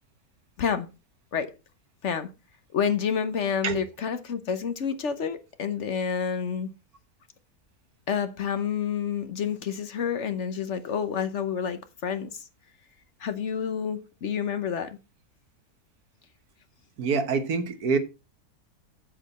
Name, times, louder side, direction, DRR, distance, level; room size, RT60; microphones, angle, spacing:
voice 1, 2.7-6.7 8.1-12.4 13.2-15.0, left 7 dB, 55° left, 1.1 m, -29 dB
voice 2, 17.0-18.0, right 5 dB, 80° right, 1.7 m, -26 dB
8.3 x 7.5 x 4.1 m
omnidirectional pair, 1.6 m